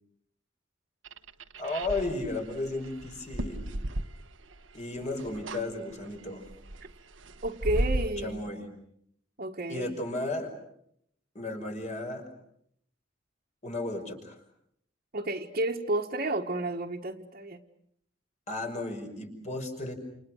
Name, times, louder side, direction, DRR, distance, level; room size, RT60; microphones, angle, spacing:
sound 1, 1.0-4.7 5.0-5.7 6.0-8.1, right 1 dB, 85° right, 1.2 m, -34 dB
voice 1, 1.6-3.7 4.7-6.4 8.2-8.6 9.7-10.5 11.3-12.3 13.6-14.4 18.5-19.9, left 2 dB, 40° left, 4 dB, 5.6 m, -34 dB
voice 2, 7.4-8.5 9.4-9.9 15.1-17.6, right 2 dB, 50° right, -1 dB, 1.5 m, -31 dB
29.5 x 29.5 x 6.4 m, 0.70 s
head